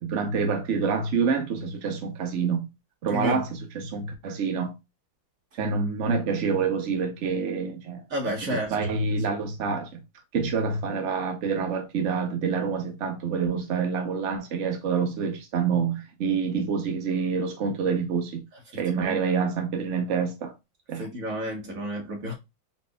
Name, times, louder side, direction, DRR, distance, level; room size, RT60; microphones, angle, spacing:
voice 1, 0.0-2.7 3.0-3.5 3.7-4.7 5.5-8.0 8.5-9.9 10.3-18.4 18.8-20.5 20.9-21.0, right 5 dB, 65° right, 0.7 m, -27 dB
voice 2, 3.1-3.4 8.1-8.9 18.9-19.2 20.9-22.3, equal, 45° right, 1.6 m, -31 dB
4.2 x 4.1 x 2.2 m
omnidirectional pair, 2.2 m